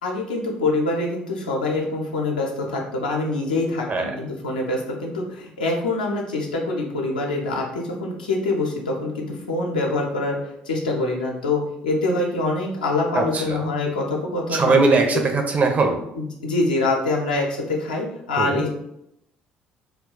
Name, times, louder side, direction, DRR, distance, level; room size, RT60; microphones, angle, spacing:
voice 1, 0.0-10.4 10.7-14.8 16.2-18.7, left 2 dB, 80° left, -1 dB, 0.5 m, -25 dB
voice 2, 13.1-13.6 14.5-16.0 18.4-18.6, right 3 dB, 35° right, 4 dB, 0.6 m, -20 dB
2.3 x 2.2 x 3.7 m, 0.80 s
figure-of-eight pair, 50°, 4 cm